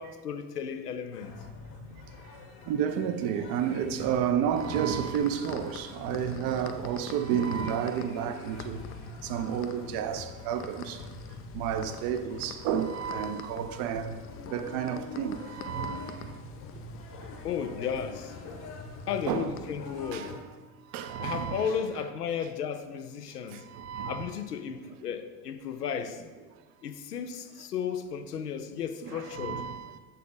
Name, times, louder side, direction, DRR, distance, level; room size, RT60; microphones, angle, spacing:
voice 1, 0.0-1.4 17.4-18.3 19.1-20.3 21.2-23.6 24.0-26.2 26.8-29.6, left 7 dB, 90° left, 0.5 m, -34 dB
sound 1, 1.1-20.4, left 2 dB, 45° left, 1.3 m, -45 dB
voice 2, 2.7-8.8 9.2-11.0 11.5-14.2 14.5-16.2 19.3-19.5 20.1-20.3 20.9-21.8 23.5-24.3 29.0-30.0, right 8 dB, 50° right, 0.6 m, -31 dB
sound 2, 4.6-20.3, left 8 dB, 30° left, 0.4 m, -47 dB
7.3 x 4.1 x 3.9 m
figure-of-eight pair, 65°, 46 cm